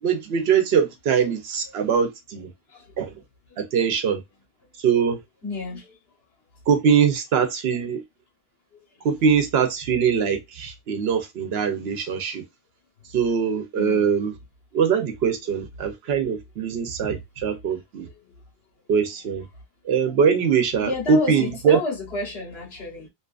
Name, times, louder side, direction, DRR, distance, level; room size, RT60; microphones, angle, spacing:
voice 1, 0.0-2.5 3.0-3.2 3.6-4.2 4.8-5.2 6.7-8.0 9.0-12.4 13.1-14.4 14.7-18.1 18.9-19.5 19.8-21.8, right 6 dB, 90° right, 0.9 m, -22 dB
voice 2, 5.4-6.0 8.7-8.8 13.7-14.1 18.0-18.1 20.8-23.1, left 3 dB, 80° left, 1.3 m, -31 dB
2.8 x 2.4 x 2.3 m
omnidirectional pair, 1.0 m